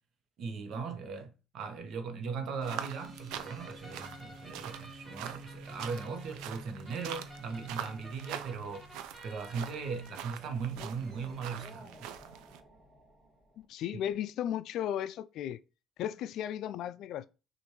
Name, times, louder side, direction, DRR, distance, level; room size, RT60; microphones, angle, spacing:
voice 1, 0.4-8.9 9.2-12.1, right 5 dB, 60° right, 1.0 m, -38 dB
sound 1, 2.6-11.7, right 1 dB, 35° right, 1.7 m, -51 dB
sound 2, 2.6-12.6, right 10 dB, 85° right, 0.4 m, -44 dB
sound 3, 3.3-13.6, right 1 dB, 15° right, 2.2 m, -54 dB
voice 2, 13.7-15.6 16.0-17.3, left 10 dB, 70° left, 0.3 m, -35 dB
6.2 x 2.5 x 3.0 m
cardioid pair, 100°, 0 cm